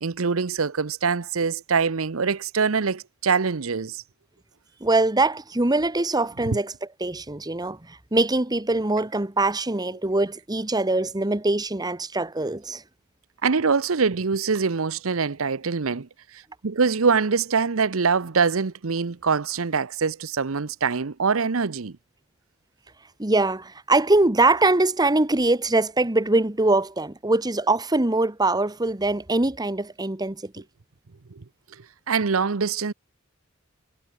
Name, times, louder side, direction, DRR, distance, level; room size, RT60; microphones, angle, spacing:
voice 1, 0.0-4.0 6.5-6.6 13.4-21.9 31.4-31.5 32.1-32.9, right 5 dB, 80° right, 0.8 m, -24 dB
voice 2, 4.8-6.7 7.0-12.8 23.2-30.6, right 2 dB, 20° right, 1.4 m, -23 dB
head